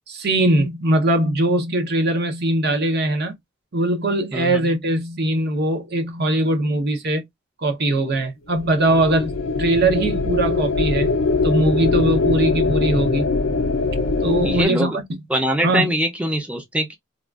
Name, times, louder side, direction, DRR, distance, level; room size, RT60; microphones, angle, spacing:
voice 1, 0.1-3.3 3.7-7.2 7.6-11.1 11.4-13.3 14.2-15.2 15.6-15.9, right 1 dB, 50° right, 0.7 m, -21 dB
voice 2, 4.3-4.6 14.4-15.0 15.3-17.0, right 1 dB, 5° right, 0.5 m, -23 dB
sound 1, 8.5-14.6, left 3 dB, 60° left, 0.5 m, -22 dB
3.5 x 2.3 x 2.3 m
head